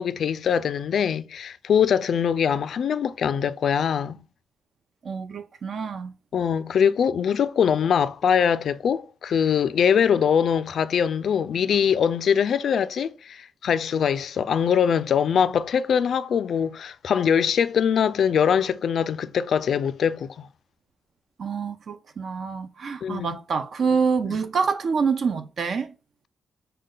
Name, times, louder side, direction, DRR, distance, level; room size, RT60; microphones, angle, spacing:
voice 1, 0.0-4.2 6.3-20.5 23.0-23.4 24.3-24.4, left 7 dB, 60° left, 0.3 m, -22 dB
voice 2, 5.0-6.1 21.4-25.9, right 5 dB, 50° right, 0.4 m, -26 dB
6.3 x 2.2 x 3.8 m
wide cardioid pair, 145°, 0 cm